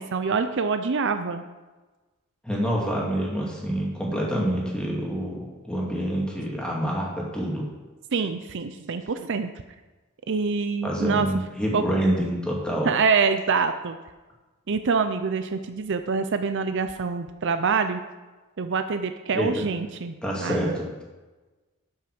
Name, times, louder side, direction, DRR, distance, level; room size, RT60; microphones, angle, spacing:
voice 1, 0.0-1.4 8.1-9.5 10.3-11.3 11.7-11.8 12.8-14.0 14.7-18.0 18.6-20.1 20.4-20.7, right 5 dB, 60° right, 9 dB, 0.5 m, -25 dB
voice 2, 2.4-7.7 10.8-12.9 19.3-19.7 20.2-21.0, equal, 5° left, -3 dB, 2.4 m, -27 dB
11.5 x 5.8 x 6.1 m, 1.2 s
head